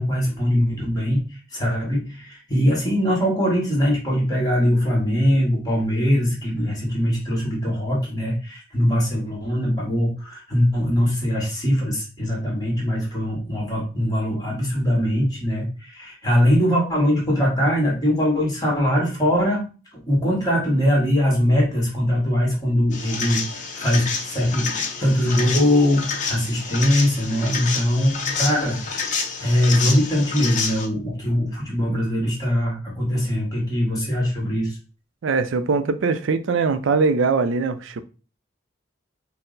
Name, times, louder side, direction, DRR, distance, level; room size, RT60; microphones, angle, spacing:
voice 1, 0.0-19.6 20.1-24.7 25.0-28.8 29.4-34.8, equal, 20° left, 1.3 m, -21 dB
sound 1, 22.9-30.9, left 5 dB, 40° left, 0.6 m, -28 dB
voice 2, 35.2-38.0, right 4 dB, 80° right, 0.4 m, -21 dB
4.2 x 2.0 x 3.9 m
head